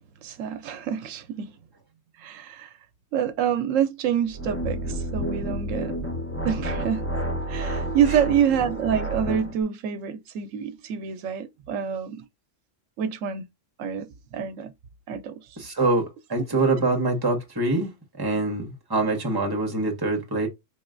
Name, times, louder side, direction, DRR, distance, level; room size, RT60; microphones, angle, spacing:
voice 1, 0.2-1.6 2.2-2.7 3.1-5.9 6.4-7.1 7.5-12.2 13.0-13.4 13.8-14.7 15.1-15.6 16.4-16.5, right 8 dB, 80° right, 0.9 m, -27 dB
sound 1, 4.3-9.6, right 1 dB, 15° left, 0.6 m, -30 dB
voice 2, 15.6-17.9 18.2-20.5, right 2 dB, 20° right, 1.1 m, -24 dB
4.3 x 3.0 x 2.4 m
omnidirectional pair, 1.3 m